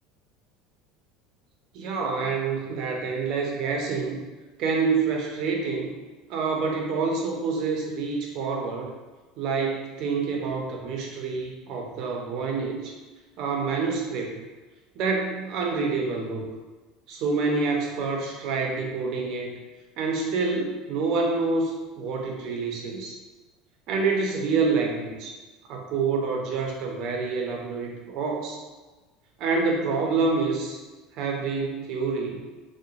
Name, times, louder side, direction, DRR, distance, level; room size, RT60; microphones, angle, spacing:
voice 1, 1.7-4.2 4.6-6.0 6.3-8.9 9.4-12.9 13.4-14.4 15.0-16.4 17.1-19.6 20.0-23.1 23.9-25.3 25.7-28.6 29.4-30.8 31.1-32.4, right 4 dB, 50° right, 0 dB, 0.5 m, -27 dB
3.0 x 2.1 x 2.4 m, 1.2 s
cardioid pair, 160°, 0 cm